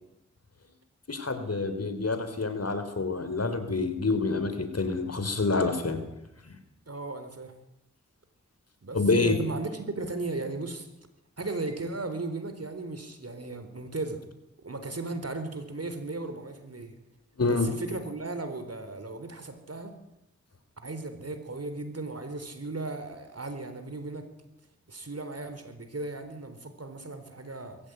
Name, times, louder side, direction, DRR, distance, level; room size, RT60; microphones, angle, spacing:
voice 1, 1.1-6.0 6.4-6.6 8.9-9.4 17.4-17.7, left 3 dB, 60° left, 9 dB, 4.0 m, -27 dB
voice 2, 6.9-7.5 8.8-10.9 11.4-14.2 14.6-17.0 17.5-19.9 20.8-24.3 24.9-27.8, right 3 dB, 60° right, 8 dB, 4.3 m, -36 dB
22.0 x 15.5 x 9.5 m, 0.92 s
cardioid pair, 45°, 29 cm